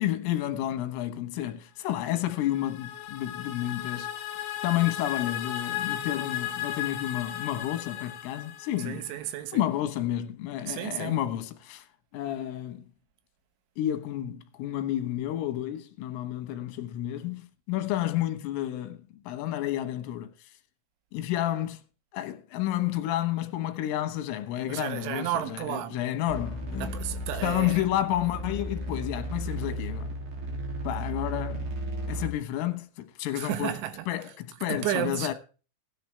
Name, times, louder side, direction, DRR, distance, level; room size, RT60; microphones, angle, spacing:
voice 1, 0.0-4.1 4.6-9.0 9.5-11.9 12.1-12.9 13.8-19.0 19.3-20.3 21.1-21.8 22.1-26.9 27.4-30.1 30.8-31.7 32.1-33.8 34.1-35.3, left 13 dB, 85° left, 3.9 m, -30 dB
sound 1, 2.0-9.2, left 11 dB, 65° left, 2.9 m, -35 dB
voice 2, 8.8-9.6 10.7-11.2 24.7-26.0 26.8-27.8 33.3-34.1 34.7-35.3, right 12 dB, 75° right, 3.4 m, -32 dB
sound 2, 26.3-32.3, equal, 45° right, 3.5 m, -34 dB
17.0 x 10.0 x 3.3 m
omnidirectional pair, 5.7 m